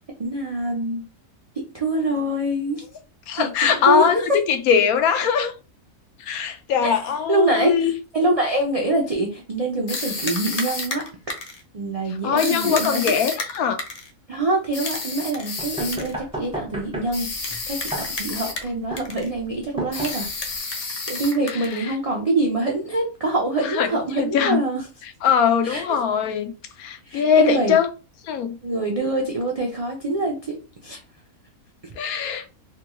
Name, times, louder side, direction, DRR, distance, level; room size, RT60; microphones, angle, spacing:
voice 1, 0.2-1.0 1.6-2.8 3.4-4.2 6.8-7.0 7.3-7.9 8.1-11.0 11.7-13.0 14.3-17.9 18.2-20.3 21.1-24.8 25.6-25.8 27.1-27.8 28.6-30.6 30.8-31.0, right 2 dB, 60° right, 0.3 m, -24 dB
voice 2, 3.3-5.5 6.2-7.9 12.1-13.8 21.5-22.0 23.6-24.6 25.2-26.5 26.8-27.9 28.2-28.6 32.0-32.5, left 7 dB, 85° left, 1.1 m, -21 dB
sound 1, 9.9-11.6 12.4-14.1 14.7-16.1 17.1-18.7 19.0-19.3 19.9-21.8, left 3 dB, 50° left, 0.4 m, -30 dB
sound 2, 15.6-20.6, right 1 dB, 5° right, 0.5 m, -34 dB
3.4 x 2.2 x 2.9 m
omnidirectional pair, 1.5 m